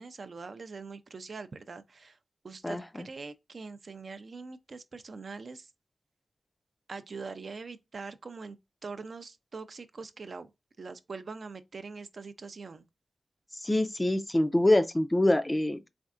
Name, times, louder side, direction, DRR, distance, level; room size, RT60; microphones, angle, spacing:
voice 1, 0.0-2.1 2.4-5.6 6.9-8.6 8.8-10.5 10.8-12.8, right 4 dB, 50° right, 0.4 m, -43 dB
voice 2, 2.6-3.1 13.6-15.9, left 1 dB, 15° left, 0.4 m, -25 dB
4.2 x 3.5 x 2.4 m
wide cardioid pair, 150°, 0 cm